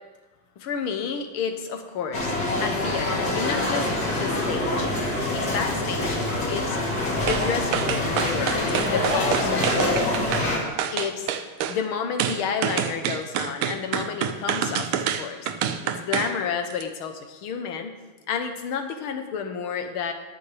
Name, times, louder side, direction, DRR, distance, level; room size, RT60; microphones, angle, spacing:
voice 1, 0.6-4.9 5.3-6.8 7.2-10.1 10.9-11.3 11.7-14.9 15.2-18.0 18.3-20.1, left 6 dB, 80° left, 6 dB, 1.8 m, -31 dB
sound 1, 2.1-10.6, left 1 dB, 45° left, 2.5 m, -25 dB
sound 2, 7.3-7.5 7.7-10.5 10.8-11.8 12.2-16.3 16.7-16.8, right 9 dB, 85° right, 1.6 m, -27 dB
20.0 x 7.0 x 3.4 m, 1.2 s
omnidirectional pair, 2.3 m